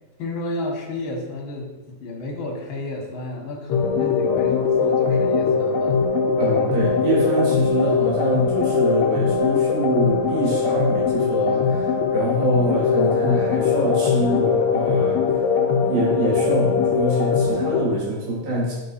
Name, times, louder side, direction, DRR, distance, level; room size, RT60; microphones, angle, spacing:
voice 1, 0.2-6.0, left 2 dB, 50° left, -1 dB, 1.6 m, -31 dB
sound 1, 3.7-17.8, left 5 dB, 70° left, 1.8 m, -21 dB
voice 2, 6.4-15.3 15.9-18.7, right 1 dB, 80° right, -6 dB, 4.3 m, -25 dB
9.7 x 4.4 x 4.2 m, 1.2 s
omnidirectional pair, 3.9 m